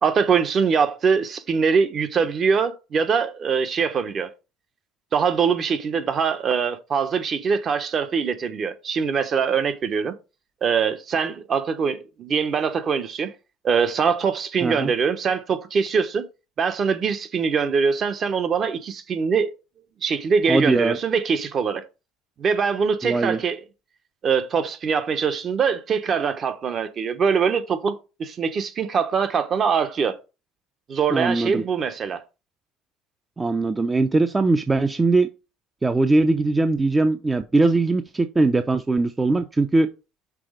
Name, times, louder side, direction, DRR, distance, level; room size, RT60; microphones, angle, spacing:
voice 1, 0.0-4.3 5.1-10.2 10.6-13.3 13.6-16.3 16.6-19.5 20.0-21.8 22.4-23.6 24.2-27.9 28.2-30.2 30.9-32.2, right 6 dB, 40° right, 1.0 m, -23 dB
voice 2, 14.6-14.9 20.5-21.0 23.0-23.4 31.1-31.6 33.4-35.3 35.8-39.9, right 3 dB, 15° right, 0.5 m, -20 dB
6.1 x 3.9 x 5.0 m
supercardioid pair, 115°, 0 cm